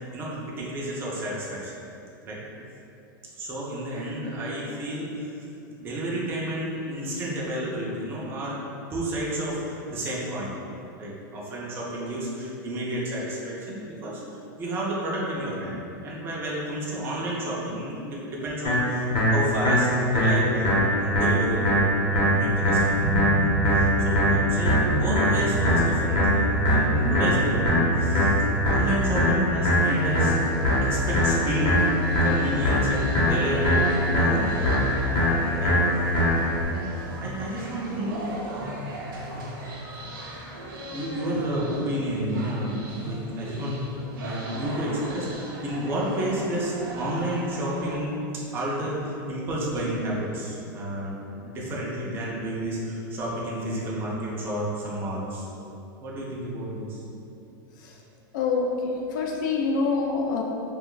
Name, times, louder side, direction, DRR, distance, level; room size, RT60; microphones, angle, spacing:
voice 1, 0.0-1.8 2.2-2.4 3.4-5.3 5.8-8.6 8.9-10.6 11.0-14.2 14.6-21.7 22.0-23.1 23.7-28.3 28.6-30.4 30.8-31.9 32.2-34.7 35.6-35.8 36.7-38.4 40.0-40.1 40.8-51.2 51.4-55.5 56.0-57.0, right 1 dB, 20° right, -5 dB, 0.4 m, -31 dB
sound 1, 18.6-36.6, equal, 40° left, 0.9 m, -22 dB
sound 2, 22.0-28.5, equal, 75° left, 0.8 m, -28 dB
sound 3, 29.8-48.0, right 1 dB, 70° right, 0.5 m, -38 dB
voice 2, 58.3-60.4, left 4 dB, 60° left, 0 dB, 0.4 m, -26 dB
2.4 x 2.2 x 3.7 m, 2.7 s
supercardioid pair, 155°, 12 cm